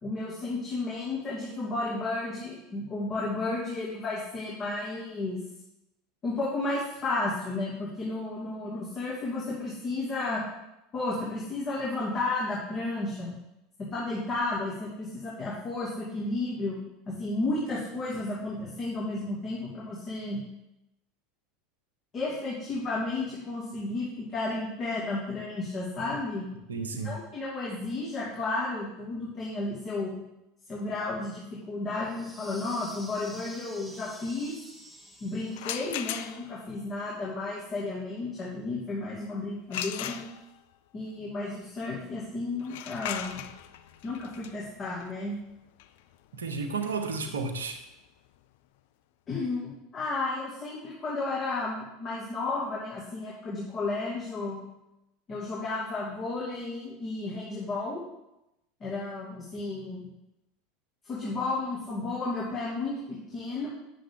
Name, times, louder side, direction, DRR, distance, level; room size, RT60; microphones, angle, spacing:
voice 1, 0.0-5.4 6.2-10.4 10.9-13.4 13.8-16.8 17.1-20.4 22.1-26.5 27.0-30.2 30.7-34.5 35.2-40.2 40.9-43.4 44.0-45.4 49.3-54.6 55.3-58.0 58.8-60.1 61.0-63.7, left 2 dB, 35° left, -7 dB, 2.5 m, -33 dB
voice 2, 26.7-27.1 46.3-47.8, right 4 dB, 75° right, 6 dB, 1.0 m, -32 dB
sound 1, 32.0-36.1, equal, ahead, 1.2 m, -48 dB
sound 2, 35.5-36.7 39.7-40.7 42.6-48.3, left 11 dB, 60° left, 0.4 m, -39 dB
8.8 x 7.0 x 3.8 m, 0.91 s
figure-of-eight pair, 75°, 0 cm